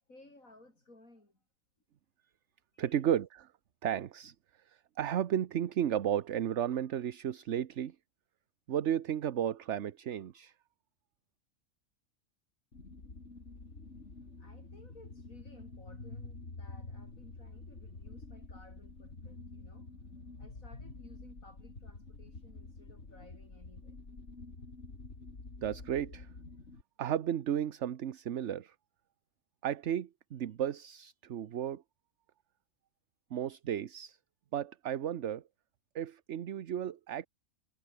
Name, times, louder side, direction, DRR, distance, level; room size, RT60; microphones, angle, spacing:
voice 1, 0.1-1.4 2.7-3.0 14.4-19.9 20.4-24.0, left 2 dB, 85° left, 7.6 m, -58 dB
voice 2, 2.8-3.5 3.8-4.3 4.7-8.0 8.7-10.5 25.6-26.3 27.0-28.7 29.6-31.8 33.3-34.2 34.5-35.4 35.9-37.3, right 10 dB, 60° right, 1.1 m, -33 dB
sound 1, 12.7-26.8, left 3 dB, 60° left, 3.6 m, -48 dB
omnidirectional pair, 1.4 m